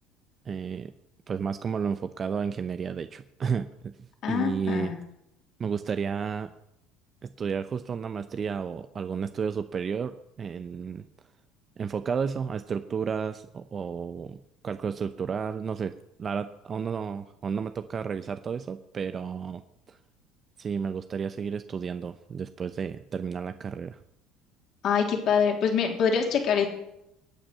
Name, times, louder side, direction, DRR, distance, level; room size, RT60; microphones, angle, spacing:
voice 1, 0.4-0.9 1.3-4.9 5.6-6.5 7.2-11.0 11.8-15.9 16.2-19.6 19.9-20.0 20.6-24.0, right 6 dB, 35° right, 10 dB, 0.8 m, -32 dB
voice 2, 4.2-5.0 24.8-26.7, left 7 dB, 55° left, 2 dB, 3.5 m, -25 dB
22.5 x 8.9 x 5.6 m, 0.84 s
hypercardioid pair, 70°, 0 cm